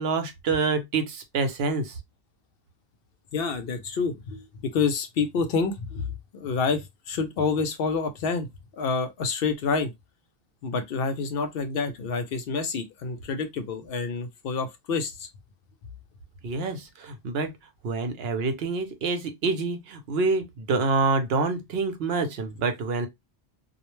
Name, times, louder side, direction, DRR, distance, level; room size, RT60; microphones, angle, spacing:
voice 1, 0.0-2.0 16.4-17.5 17.8-23.1, right 4 dB, 75° right, 0.9 m, -27 dB
voice 2, 3.3-4.5 4.7-6.1 6.3-8.5 8.7-9.9 10.6-15.3, left 4 dB, 70° left, 0.7 m, -28 dB
2.4 x 2.1 x 3.0 m
omnidirectional pair, 1.1 m